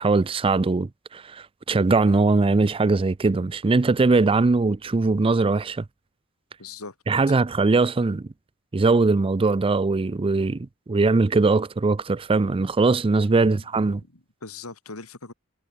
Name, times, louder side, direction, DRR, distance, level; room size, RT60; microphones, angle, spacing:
voice 1, 0.0-5.8 7.1-8.3 8.7-14.0, right 3 dB, 25° right, 0.4 m, -21 dB
voice 2, 6.6-6.9 13.4-13.6 14.1-15.3, left 3 dB, 70° left, 3.6 m, -40 dB
head